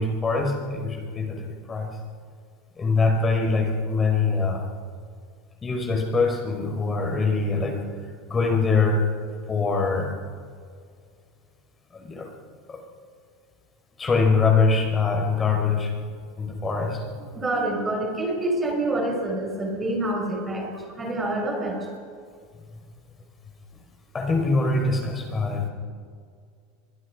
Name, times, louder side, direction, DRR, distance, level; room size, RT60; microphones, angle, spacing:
voice 1, 0.0-1.4 1.7-1.9 2.8-4.6 5.6-7.8 8.3-9.0 9.5-10.1 11.9-12.3 12.7-12.8 14.0-15.9 16.4-17.0 24.1-25.7, left 4 dB, 20° left, 2 dB, 4.9 m, -23 dB
voice 2, 17.3-21.9, right 1 dB, 15° right, 1 dB, 5.7 m, -27 dB
27.0 x 23.5 x 5.0 m, 2.1 s
supercardioid pair, 150°, 0 cm